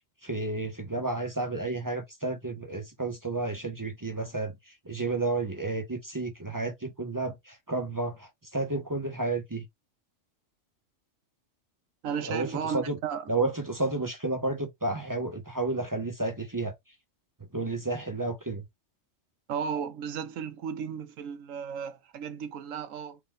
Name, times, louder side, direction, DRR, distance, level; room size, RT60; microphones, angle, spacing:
voice 1, 0.2-9.7 12.3-13.0 13.3-16.7 17.5-18.6, right 2 dB, 25° right, 0.5 m, -31 dB
voice 2, 12.0-13.2 19.5-23.2, right 7 dB, 85° right, 1.2 m, -34 dB
4.6 x 2.6 x 3.6 m
omnidirectional pair, 1.3 m